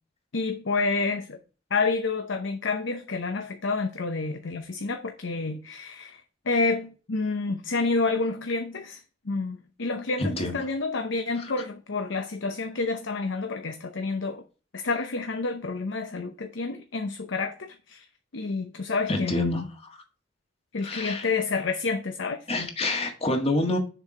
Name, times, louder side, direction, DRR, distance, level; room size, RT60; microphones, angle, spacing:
voice 1, 0.3-1.4 1.7-14.4 14.7-18.1 18.3-19.7 20.7-22.5, left 3 dB, 80° left, 0.7 m, -29 dB
voice 2, 10.2-10.6 19.1-19.6 20.8-21.3 22.5-23.8, left 1 dB, 35° left, 1.7 m, -27 dB
6.9 x 4.6 x 4.9 m
head